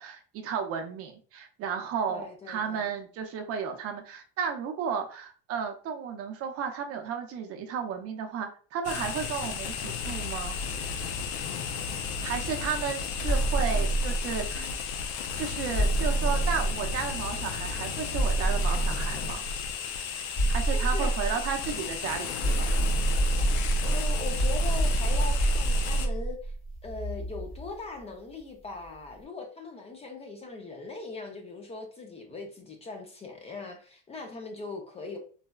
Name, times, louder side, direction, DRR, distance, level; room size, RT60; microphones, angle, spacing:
voice 1, 0.0-10.6 12.2-14.7 15.4-19.5 20.5-22.6, right 7 dB, 50° right, 0.6 m, -33 dB
voice 2, 2.1-2.9 13.7-13.9 14.5-14.8 20.8-21.1 23.8-26.5 26.8-35.2, left 3 dB, 20° left, 0.5 m, -40 dB
sound 1, 8.8-26.1, left 6 dB, 80° left, 0.5 m, -34 dB
sound 2, 13.2-14.7 15.7-17.4 18.1-19.5 20.3-21.9 22.4-27.7, right 2 dB, 45° left, 1.5 m, -27 dB
3.9 x 2.2 x 2.2 m
cardioid pair, 140°, 29 cm